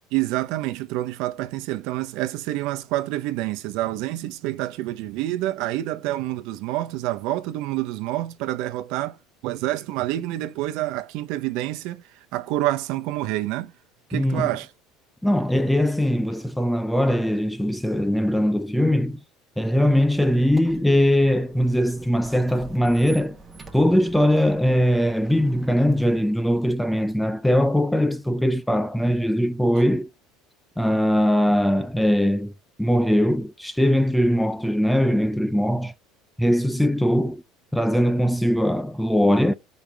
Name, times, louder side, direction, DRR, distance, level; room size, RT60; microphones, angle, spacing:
voice 1, 0.1-9.2 9.4-12.0 12.3-13.7 14.1-14.7, right 15 dB, 65° right, 0.9 m, -27 dB
voice 2, 14.1-14.5 15.2-19.2 19.6-23.4 23.7-30.1 30.8-32.5 32.8-35.9 36.4-37.4 37.7-39.5, equal, ahead, 0.4 m, -21 dB
Squeak, 20.0-26.5, right 3 dB, 15° right, 1.2 m, -46 dB
15.5 x 5.3 x 3.4 m
cardioid pair, 150°, 0 cm